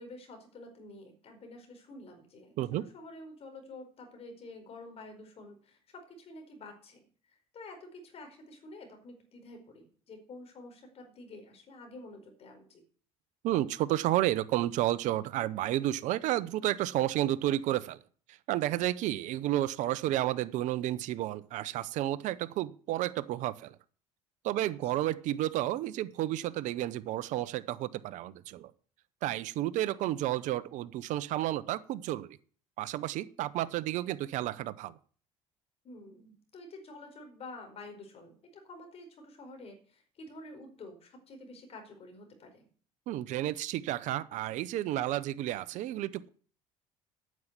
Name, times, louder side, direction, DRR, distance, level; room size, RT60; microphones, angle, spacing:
voice 1, 0.0-12.8 24.6-25.0 35.8-42.7, left 2 dB, 45° left, 4 dB, 4.7 m, -49 dB
voice 2, 13.4-18.0 18.3-23.8 24.4-28.7 29.2-32.4 32.8-35.0 43.1-46.3, right 14 dB, 65° right, 16 dB, 0.9 m, -31 dB
9.5 x 7.5 x 8.2 m, 0.44 s
supercardioid pair, 80°, 14 cm